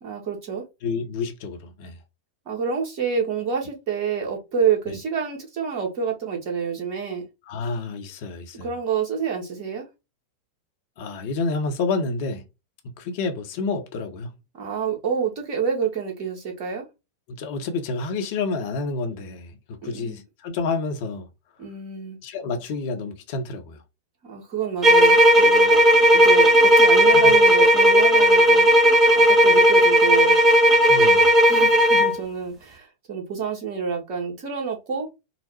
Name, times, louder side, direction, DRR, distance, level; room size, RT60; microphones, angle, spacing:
voice 1, 0.0-0.6 2.5-7.3 8.6-9.9 14.5-16.9 19.8-20.2 21.6-22.2 24.2-25.8 26.1-28.7 29.1-30.4 31.4-35.1, right 6 dB, 45° right, 1.7 m, -28 dB
voice 2, 0.8-2.0 4.9-5.0 7.5-8.7 11.0-12.4 13.0-14.3 17.3-21.3 22.2-23.8 27.1-27.3 30.9-31.3, left 4 dB, 50° left, 0.9 m, -29 dB
sound 1, 24.8-32.2, equal, 25° right, 0.9 m, -15 dB
4.0 x 2.0 x 4.3 m
figure-of-eight pair, 90°, 0 cm